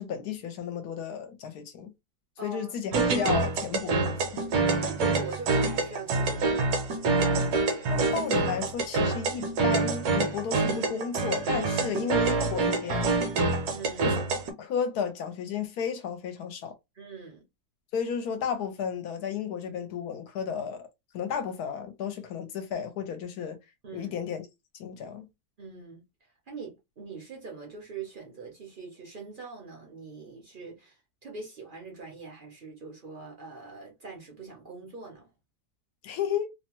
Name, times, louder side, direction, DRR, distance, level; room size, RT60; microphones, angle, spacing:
voice 1, 0.0-1.9 2.4-4.2 7.9-13.2 14.0-14.2 14.6-16.7 17.9-20.9 21.1-23.6 23.9-24.4 24.8-25.3 36.0-36.5, left 7 dB, 75° left, 1.1 m, -33 dB
voice 2, 2.4-2.7 4.8-6.7 13.7-14.1 17.0-17.4 23.8-24.1 25.6-26.0 26.5-30.9 31.2-35.3, right 4 dB, 50° right, 0.6 m, -42 dB
sound 1, 2.9-14.5, right 3 dB, 70° right, 1.1 m, -26 dB
2.8 x 2.1 x 2.9 m
omnidirectional pair, 1.7 m